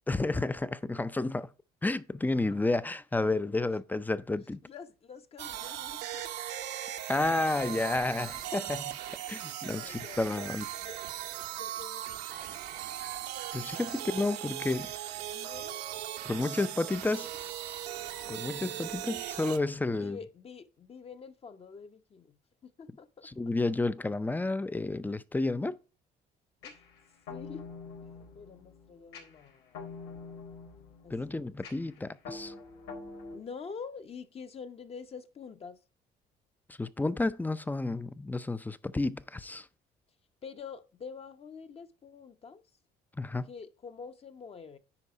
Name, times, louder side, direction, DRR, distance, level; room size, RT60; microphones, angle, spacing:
voice 1, 0.1-1.5 1.8-4.6 7.1-9.0 9.3-10.6 13.5-14.9 16.2-17.3 18.3-20.2 23.4-25.8 31.1-32.5 36.7-39.7 43.2-43.5, left 2 dB, 10° left, 0.5 m, -31 dB
voice 2, 4.6-6.3 9.7-10.5 10.8-11.0 11.5-12.6 15.3-15.8 16.4-17.3 19.9-23.3 26.6-26.8 27.3-27.7 28.0-29.9 31.0-31.6 33.3-35.8 40.4-42.6 43.5-44.8, left 5 dB, 35° left, 0.9 m, -47 dB
sound 1, 5.4-19.6, right 12 dB, 85° right, 1.0 m, -39 dB
sound 2, 26.6-33.4, left 4 dB, 90° left, 3.7 m, -46 dB
10.0 x 4.2 x 4.7 m
cardioid pair, 110°, 17 cm